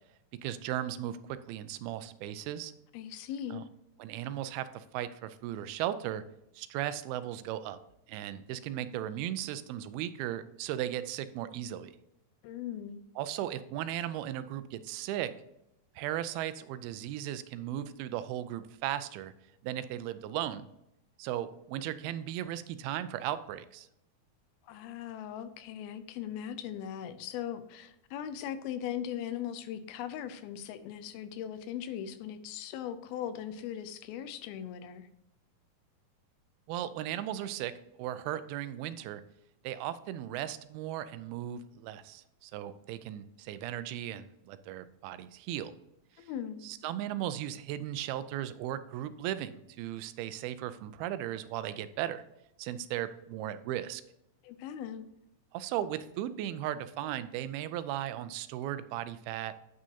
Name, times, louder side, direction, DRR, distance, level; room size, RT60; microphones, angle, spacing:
voice 1, 0.4-2.7 3.5-3.6 4.0-6.2 6.6-7.8 8.1-11.9 13.2-15.3 16.0-19.3 19.6-20.7 21.2-23.9 36.7-37.7 38.0-39.2 39.6-45.7 46.6-52.2 52.6-54.0 55.5-59.5, right 12 dB, 90° right, 13 dB, 2.5 m, -36 dB
voice 2, 2.9-3.6 12.4-13.1 24.6-35.1 46.2-46.6 54.4-55.1, left 9 dB, 85° left, 10 dB, 2.5 m, -39 dB
9.4 x 6.2 x 2.8 m, 0.84 s
omnidirectional pair, 4.3 m